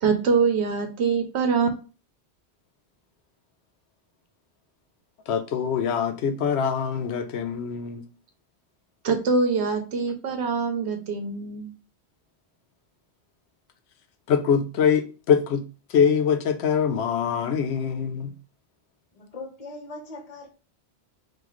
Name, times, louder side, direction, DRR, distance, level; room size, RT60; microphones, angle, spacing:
voice 1, 0.0-1.7 9.0-11.7, right 5 dB, 80° right, 0.9 m, -24 dB
voice 2, 5.3-8.0 9.5-9.7 14.3-15.6 15.9-18.3, left 7 dB, 80° left, 0.9 m, -24 dB
voice 3, 19.1-20.5, left 3 dB, 40° left, 1.0 m, -40 dB
3.0 x 2.5 x 3.8 m
omnidirectional pair, 1.1 m